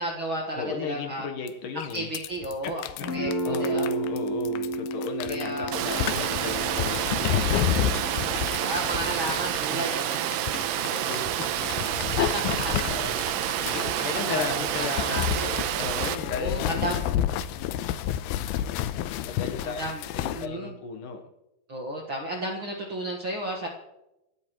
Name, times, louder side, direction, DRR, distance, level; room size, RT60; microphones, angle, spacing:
voice 1, 0.0-1.3 1.9-2.8 3.1-3.9 5.3-5.8 8.6-10.4 10.7-11.1 12.2-12.9 13.5-14.4 14.8-15.5 16.2-17.0 19.6-20.0 20.3-20.7 21.7-23.7, right 1 dB, 50° right, 0 dB, 1.6 m, -33 dB
voice 2, 0.6-2.1 2.6-8.5 9.7-9.9 10.8-11.5 12.8-17.0 17.6-17.7 19.3-19.8 20.1-21.2, left 5 dB, 65° left, 5 dB, 2.6 m, -36 dB
sound 1, 1.5-1.6 1.8-20.5, left 11 dB, 90° left, 2.6 m, -30 dB
Guitar, 3.0-10.7, right 1 dB, 45° left, 4.4 m, -33 dB
Water, 5.7-16.2, right 11 dB, 75° right, 2.4 m, -29 dB
28.0 x 13.0 x 3.1 m, 0.94 s
omnidirectional pair, 4.4 m